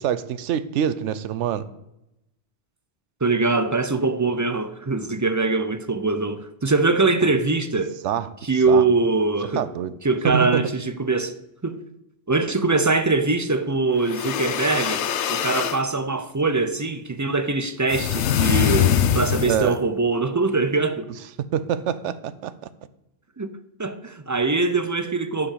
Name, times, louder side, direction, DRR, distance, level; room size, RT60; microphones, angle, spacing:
voice 1, 0.0-1.7 8.0-8.3 8.7-8.8 9.6-9.9 10.2-10.6 19.4-19.8 21.5-22.5, right 9 dB, 85° right, 1.0 m, -25 dB
voice 2, 3.2-7.9 8.4-9.7 10.0-11.3 11.6-11.8 12.3-21.1 23.4-25.5, right 3 dB, 25° right, 0.4 m, -22 dB
sound 1, 14.0-15.8 17.9-19.8, left 9 dB, 80° left, 1.0 m, -23 dB
10.5 x 5.4 x 7.4 m
omnidirectional pair, 1.2 m